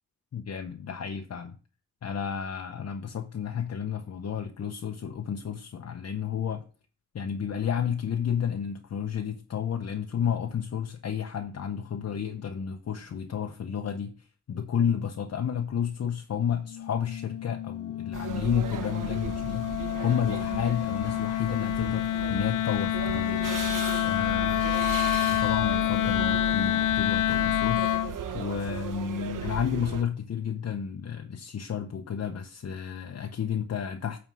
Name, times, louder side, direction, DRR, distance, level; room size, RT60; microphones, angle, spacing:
voice 1, 0.3-1.6 2.0-6.6 7.1-19.7 20.0-23.7 24.0-24.6 25.3-34.2, left 8 dB, 55° left, 0.8 m, -31 dB
Wind instrument woodwind instrument, 16.6-28.2, left 12 dB, 75° left, 0.5 m, -28 dB
sound 1, 18.1-30.0, right 7 dB, 85° right, 1.1 m, -36 dB
9.1 x 3.6 x 6.3 m
wide cardioid pair, 120°, 31 cm